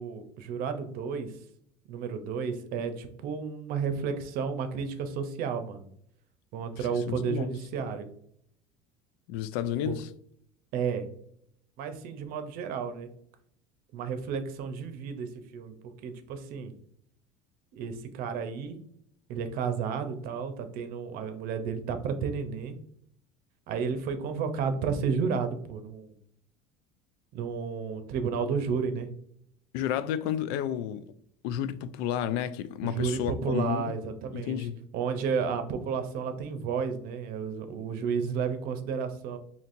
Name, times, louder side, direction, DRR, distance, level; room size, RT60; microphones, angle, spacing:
voice 1, 0.0-1.3 1.9-5.9 6.5-8.1 9.8-10.0 10.7-11.0 11.8-13.1 13.9-16.7 17.7-18.8 19.3-22.8 23.7-26.2 27.3-29.1 32.8-34.7 34.9-39.4, right 6 dB, 60° right, 0.7 m, -32 dB
voice 2, 6.9-7.5 9.3-10.1 29.7-31.1 31.4-33.9 34.3-34.8, left 10 dB, 70° left, 0.4 m, -31 dB
4.2 x 2.8 x 2.5 m
supercardioid pair, 110°, 17 cm